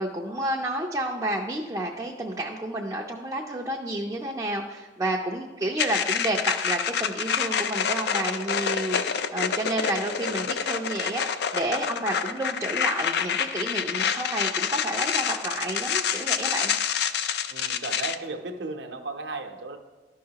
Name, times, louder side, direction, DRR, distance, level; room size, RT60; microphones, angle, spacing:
voice 1, 0.0-16.7, right 1 dB, 20° right, -2 dB, 0.5 m, -30 dB
sound 1, 5.8-18.2, left 7 dB, 60° left, 0.4 m, -27 dB
voice 2, 17.5-19.8, right 3 dB, 70° right, 4 dB, 0.7 m, -35 dB
12.5 x 5.6 x 2.8 m, 1.3 s
head